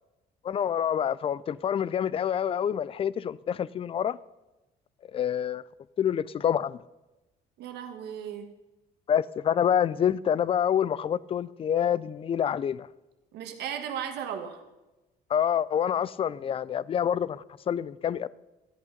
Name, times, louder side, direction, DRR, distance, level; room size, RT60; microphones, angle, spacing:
voice 1, 0.4-4.2 5.1-5.6 6.0-6.8 9.1-12.9 15.3-18.3, left 9 dB, 35° left, 0.3 m, -27 dB
voice 2, 7.6-8.5 13.3-14.6, right 8 dB, 75° right, 1.4 m, -36 dB
13.0 x 8.2 x 5.2 m
cardioid pair, 110°, 17 cm